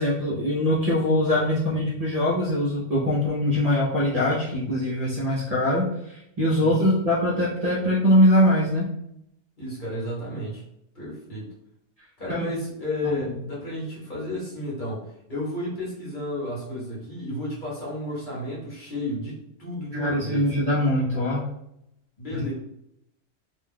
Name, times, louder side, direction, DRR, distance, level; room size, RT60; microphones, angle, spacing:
voice 1, 0.0-5.9 6.4-8.9 12.3-12.5 13.0-13.3 19.9-21.4 22.3-22.4, left 1 dB, 40° right, -6 dB, 0.7 m, -22 dB
voice 2, 9.6-10.6 10.9-11.5 12.2-20.5 22.2-22.5, left 1 dB, 45° left, -6 dB, 1.2 m, -32 dB
2.5 x 2.3 x 3.6 m, 0.78 s
omnidirectional pair, 1.2 m